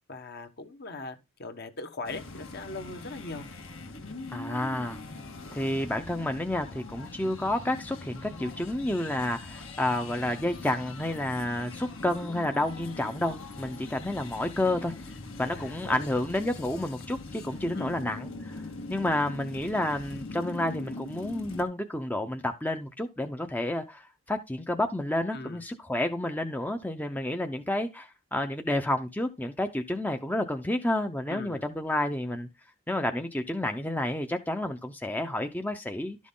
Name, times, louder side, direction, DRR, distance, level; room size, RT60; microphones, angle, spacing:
voice 1, 0.1-3.5 15.4-16.2 17.7-18.0 25.3-25.6 31.3-31.6, left 3 dB, 50° left, 1.3 m, -40 dB
sound 1, 2.0-21.6, left 3 dB, 65° left, 1.7 m, -42 dB
voice 2, 4.3-5.0 5.5-14.9 15.4-18.6 18.9-32.5 32.9-36.2, left 1 dB, 10° left, 0.7 m, -30 dB
12.0 x 6.2 x 3.7 m
head